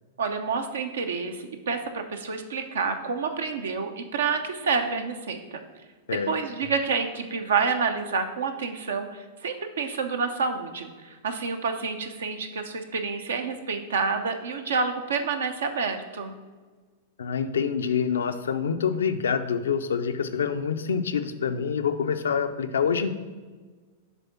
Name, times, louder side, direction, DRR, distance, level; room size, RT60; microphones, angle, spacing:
voice 1, 0.2-5.6 6.3-16.3, right 5 dB, 75° right, 7 dB, 0.7 m, -28 dB
voice 2, 17.2-23.1, left 6 dB, 75° left, 9 dB, 0.5 m, -26 dB
6.9 x 3.5 x 5.7 m, 1.4 s
hypercardioid pair, 100°, 0 cm